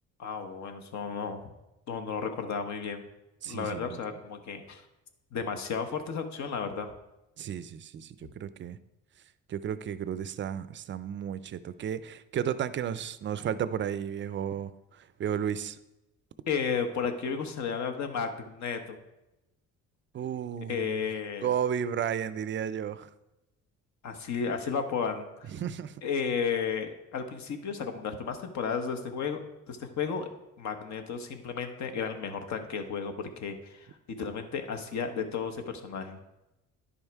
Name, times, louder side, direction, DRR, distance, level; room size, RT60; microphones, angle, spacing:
voice 1, 0.2-1.4 1.9-3.0 3.4-4.8 5.3-6.9 16.5-19.0 20.7-21.5 24.0-25.5 26.0-29.4 29.7-30.3 30.6-33.9 34.2-36.2, left 6 dB, 65° left, 6 dB, 1.0 m, -33 dB
voice 2, 3.4-4.0 7.4-8.8 9.5-15.8 20.1-21.1 21.4-23.1 25.5-26.0, right 9 dB, 40° right, 14 dB, 0.4 m, -33 dB
10.0 x 5.4 x 4.6 m, 0.95 s
cardioid pair, 135°, 31 cm